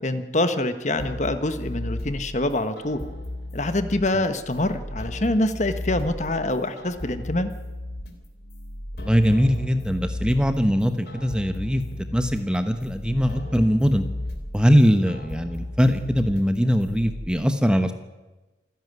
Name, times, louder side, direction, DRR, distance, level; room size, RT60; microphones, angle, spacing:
voice 1, 0.0-3.0 3.5-7.5, left 1 dB, 40° left, 9 dB, 1.3 m, -25 dB
sound 1, 1.0-17.3, left 1 dB, 60° left, 3.4 m, -35 dB
voice 2, 9.0-11.8 12.1-14.0 14.5-17.9, equal, 5° right, 8 dB, 1.1 m, -21 dB
27.0 x 11.0 x 9.6 m, 1.1 s
head